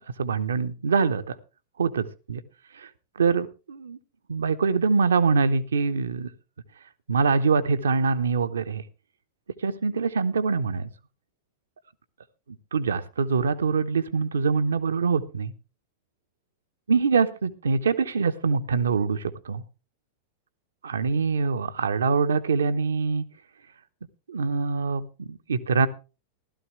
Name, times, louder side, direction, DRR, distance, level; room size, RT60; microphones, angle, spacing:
voice 1, 0.2-1.4 1.8-2.4 2.8-2.9 3.2-4.0 4.3-6.3 7.1-8.8 9.6-10.9 12.7-15.5 16.9-19.6 20.8-23.2 24.3-25.9, right 5 dB, 70° right, 11 dB, 0.9 m, -24 dB
15.0 x 12.5 x 3.3 m, 0.32 s
figure-of-eight pair, 90°, 0 cm